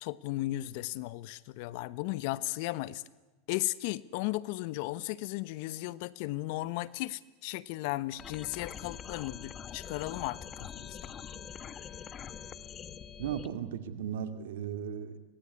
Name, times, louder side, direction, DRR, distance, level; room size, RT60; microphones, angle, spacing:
voice 1, 0.0-3.0 3.5-11.1, left 18 dB, 65° left, 18 dB, 0.9 m, -35 dB
sound 1, 8.2-13.5, left 8 dB, 30° left, 1.3 m, -44 dB
voice 2, 13.2-15.2, right 9 dB, 80° right, 9 dB, 2.3 m, -36 dB
24.0 x 19.0 x 9.8 m, 1.2 s
supercardioid pair, 110°, 0 cm